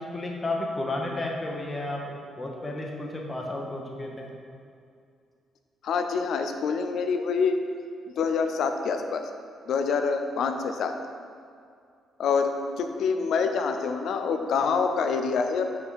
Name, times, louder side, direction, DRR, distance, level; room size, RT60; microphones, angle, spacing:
voice 1, 0.0-4.3, left 2 dB, 25° left, 0 dB, 1.0 m, -32 dB
voice 2, 5.8-7.6 8.2-9.2 9.7-10.9 12.2-12.5 12.8-15.6, left 5 dB, 70° left, 6 dB, 0.5 m, -26 dB
5.6 x 5.0 x 4.0 m, 2.4 s
cardioid pair, 90°, 0 cm